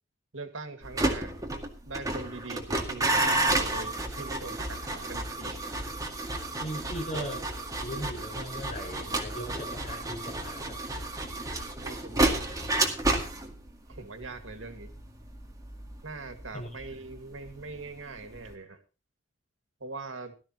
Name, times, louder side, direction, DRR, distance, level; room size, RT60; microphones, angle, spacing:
voice 1, 0.3-1.3 1.9-5.6 11.8-12.7 12.9-13.0 13.9-14.9 16.0-18.8 19.8-20.3, right 3 dB, 85° right, 8 dB, 2.0 m, -42 dB
sound 1, 0.8-17.8 18.1-18.5, right 2 dB, 20° right, 2.1 m, -31 dB
voice 2, 6.6-7.4 7.8-11.0 16.5-16.9, equal, 40° left, 1 dB, 5.9 m, -38 dB
17.5 x 13.0 x 2.9 m, 0.32 s
head